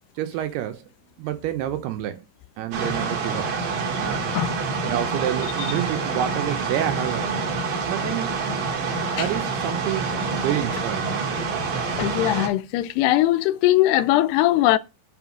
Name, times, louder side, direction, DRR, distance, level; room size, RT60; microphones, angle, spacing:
voice 1, 0.2-0.9 1.2-2.2 2.6-3.5 4.0-4.4 4.8-7.4 7.8-8.3 9.2-11.3, right 12 dB, 80° right, 2.7 m, -28 dB
sound 1, 2.7-12.5, right 4 dB, 50° right, 2.5 m, -27 dB
voice 2, 12.0-14.8, left 15 dB, 85° left, 2.6 m, -20 dB
6.6 x 5.4 x 6.1 m
omnidirectional pair, 4.7 m